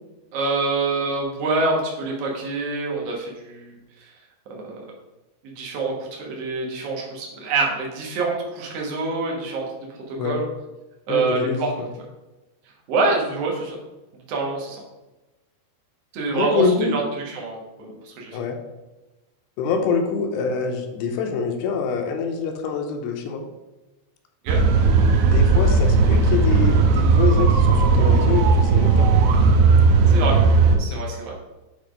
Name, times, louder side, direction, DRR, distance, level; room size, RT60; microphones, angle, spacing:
voice 1, 0.3-3.7 4.0-4.1 4.5-4.8 5.5-9.6 10.1-10.4 11.1-11.7 12.9-13.8 14.3-14.8 16.1-18.4 24.4-24.6 30.1-30.3 30.8-31.3, right 3 dB, 65° right, -1 dB, 1.6 m, -26 dB
voice 2, 11.1-11.9 16.3-17.0 18.3-18.6 19.6-23.4 25.3-29.1, left 5 dB, 80° left, 4 dB, 2.8 m, -25 dB
sound 1, 24.5-30.8, right 4 dB, 85° right, 2.7 m, -16 dB
8.4 x 3.4 x 5.1 m, 1.0 s
omnidirectional pair, 4.8 m